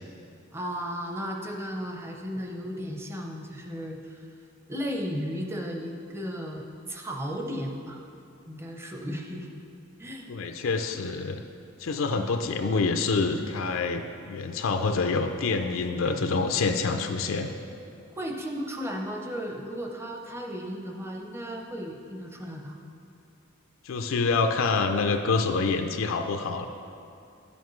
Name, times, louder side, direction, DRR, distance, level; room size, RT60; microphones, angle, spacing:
voice 1, 0.5-4.2 4.7-8.1 8.5-9.5 10.0-10.3 12.1-12.3 18.2-22.8, equal, 15° right, 1 dB, 0.6 m, -35 dB
voice 2, 10.3-11.4 11.8-17.5 23.8-26.7, left 4 dB, 85° left, 6 dB, 0.4 m, -26 dB
9.8 x 7.1 x 3.1 m, 2.5 s
head